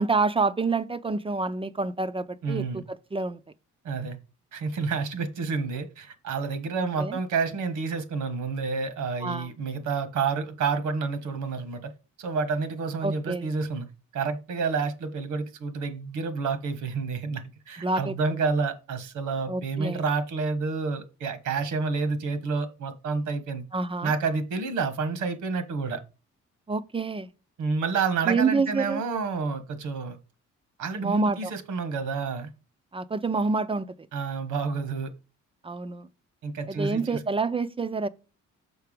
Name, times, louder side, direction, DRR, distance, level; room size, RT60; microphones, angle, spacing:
voice 1, 0.0-2.8 3.1-3.4 7.0-7.2 9.2-9.5 13.0-13.5 17.8-18.4 19.5-20.0 23.7-24.1 26.7-27.3 28.3-29.0 31.0-31.5 32.9-33.9 35.6-36.1 36.7-38.1, right 4 dB, 20° right, 0.4 m, -27 dB
voice 2, 2.4-2.8 3.8-4.2 4.5-11.9 12.2-13.9 14.1-23.6 24.0-26.0 27.6-30.2 30.8-32.5 34.1-35.1 36.4-37.2, right 4 dB, 75° right, 1.3 m, -29 dB
6.7 x 4.6 x 5.1 m
cardioid pair, 90°, 30 cm